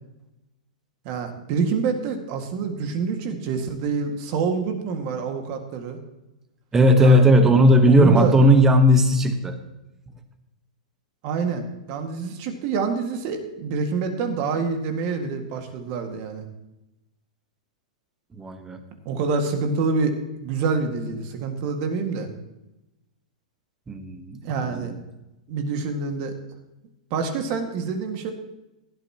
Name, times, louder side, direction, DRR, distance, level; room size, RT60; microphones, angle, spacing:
voice 1, 1.0-6.0 7.0-7.3 7.8-8.3 11.2-16.4 19.1-22.3 24.4-24.9 25.5-26.4 27.1-28.3, right 5 dB, 35° right, 5 dB, 1.8 m, -26 dB
voice 2, 6.7-9.6 18.3-18.8 23.9-25.0, equal, 10° right, 7 dB, 1.1 m, -17 dB
16.5 x 12.0 x 2.9 m, 0.95 s
supercardioid pair, 160°, 4 cm